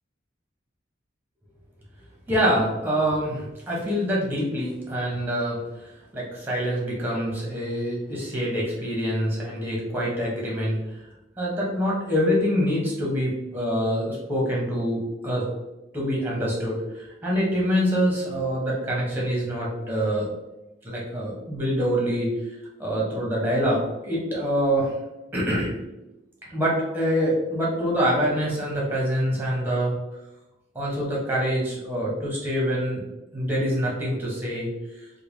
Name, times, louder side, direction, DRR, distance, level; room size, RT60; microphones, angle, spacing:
voice 1, 2.3-11.0 11.4-15.5 15.9-20.3 20.8-22.3 22.8-24.9 25.3-25.7 26.5-29.9 30.7-33.0 33.3-34.7, equal, 10° right, -4 dB, 0.9 m, -25 dB
3.3 x 2.1 x 3.2 m, 0.97 s
head